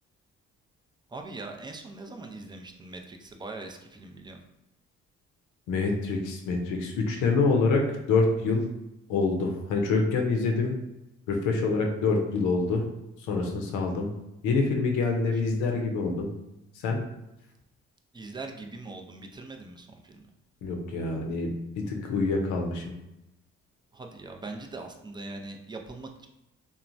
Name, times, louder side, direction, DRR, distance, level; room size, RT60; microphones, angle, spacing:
voice 1, 1.1-4.4 18.1-20.2 23.9-26.3, right 3 dB, 15° right, 3 dB, 0.4 m, -41 dB
voice 2, 5.7-8.7 9.1-10.8 11.3-12.8 13.3-14.1 14.4-16.3 16.8-17.0 20.6-21.6 21.9-22.9, left 3 dB, 85° left, 2 dB, 0.6 m, -26 dB
3.0 x 2.1 x 2.5 m, 0.93 s
supercardioid pair, 65°, 30 cm